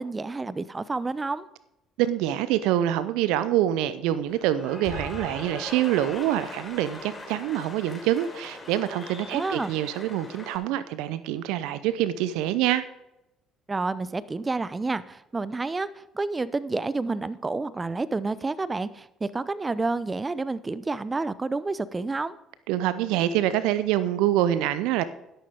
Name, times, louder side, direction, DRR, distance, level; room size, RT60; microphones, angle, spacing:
voice 1, 0.0-1.5 9.3-9.7 13.7-22.4, right 3 dB, 25° right, 17 dB, 0.6 m, -29 dB
voice 2, 2.0-12.8 22.7-25.0, right 12 dB, 70° right, 15 dB, 0.6 m, -25 dB
Cheering / Applause, 4.3-10.6, left 2 dB, 25° left, 3.6 m, -40 dB
12.5 x 11.5 x 3.6 m, 0.90 s
hypercardioid pair, 55°, 0 cm